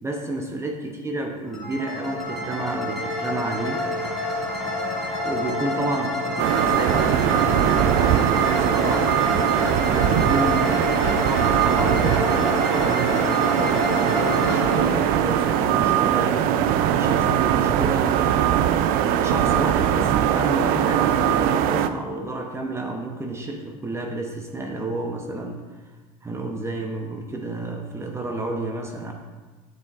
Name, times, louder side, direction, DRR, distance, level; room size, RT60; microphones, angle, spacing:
voice 1, 0.0-3.8 5.2-9.2 9.6-18.6 19.2-25.8 26.2-29.1, right 2 dB, 15° right, 2 dB, 0.8 m, -30 dB
sound 1, 1.5-16.3, left 1 dB, ahead, 1.9 m, -28 dB
sound 2, 6.4-21.9, right 10 dB, 55° right, 0.4 m, -21 dB
10.0 x 6.8 x 2.5 m, 1.3 s
supercardioid pair, 110°, 18 cm